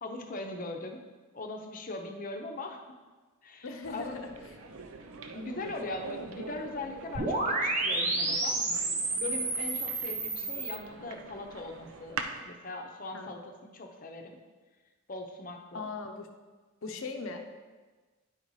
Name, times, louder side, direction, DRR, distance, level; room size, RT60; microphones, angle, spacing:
voice 1, 0.0-1.0 1.3-2.8 3.4-4.2 5.3-8.7 9.2-12.2 12.5-14.4 15.1-15.9, left 2 dB, 40° left, 3 dB, 0.8 m, -40 dB
voice 2, 3.6-4.3 13.1-13.3 15.7-16.3 16.8-17.4, left 3 dB, 70° left, 5 dB, 0.7 m, -38 dB
sound 1, 3.8-12.4, right 4 dB, 75° right, 0.6 m, -44 dB
sound 2, 7.1-10.8, right 2 dB, 35° right, 1.0 m, -30 dB
9.9 x 4.1 x 4.7 m, 1.3 s
head